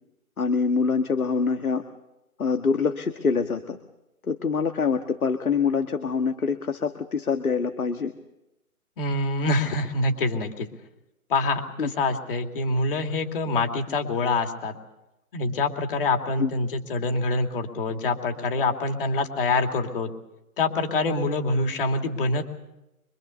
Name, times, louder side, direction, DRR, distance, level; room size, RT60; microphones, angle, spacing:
voice 1, 0.4-1.8 2.4-3.8 4.3-8.1 11.8-11.9 16.4-16.5, left 5 dB, 75° left, 7 dB, 1.8 m, -25 dB
voice 2, 9.0-10.7 11.3-14.7 15.3-20.1 20.6-22.4, left 3 dB, 40° left, 4 dB, 3.0 m, -25 dB
26.0 x 23.5 x 6.9 m, 0.93 s
figure-of-eight pair, 150°, 44 cm